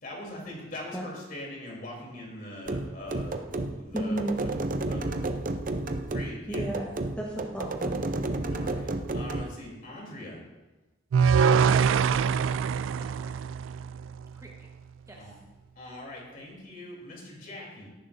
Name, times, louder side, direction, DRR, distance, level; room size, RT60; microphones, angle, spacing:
voice 1, 0.0-3.4 3.8-4.5 4.8-5.3 5.6-5.7 6.1-6.7 8.5-10.4 15.1-15.3 15.8-17.9, left 1 dB, 50° left, -2 dB, 3.4 m, -42 dB
sound 1, 2.7-9.5, right 2 dB, 45° right, 0.6 m, -31 dB
voice 2, 3.7-4.3 6.5-8.0, right 1 dB, 5° left, -4 dB, 1.2 m, -33 dB
sound 2, 11.1-14.3, right 6 dB, 85° right, 0.3 m, -24 dB
voice 3, 11.2-12.6 13.0-13.3 14.3-14.7 15.1-15.4, right 1 dB, 15° right, -1 dB, 1.2 m, -49 dB
17.0 x 10.0 x 2.7 m, 1.1 s
head